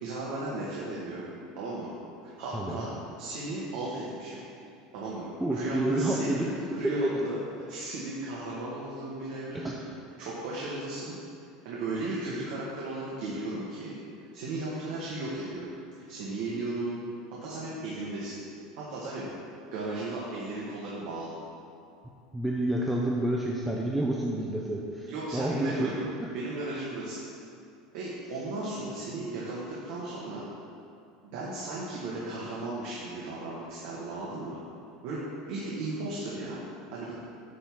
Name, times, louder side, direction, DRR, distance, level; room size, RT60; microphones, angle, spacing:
voice 1, 0.0-1.2 1.6-1.9 2.2-2.9 3.2-4.4 4.9-6.3 6.7-7.4 7.7-9.7 10.2-11.1 11.6-13.9 14.3-15.7 16.1-17.0 17.4-18.4 18.8-19.3 19.7-21.4 25.1-26.0 26.3-27.2 27.9-30.4 31.3-34.6 35.0-35.2 35.5-36.6 36.9-37.1, right 2 dB, 60° right, -6 dB, 1.4 m, -35 dB
voice 2, 5.4-6.5 6.8-7.0 9.5-9.8 22.3-25.9, right 1 dB, 5° right, -2 dB, 0.4 m, -29 dB
9.3 x 3.6 x 6.1 m, 2.5 s
cardioid pair, 175°, 0 cm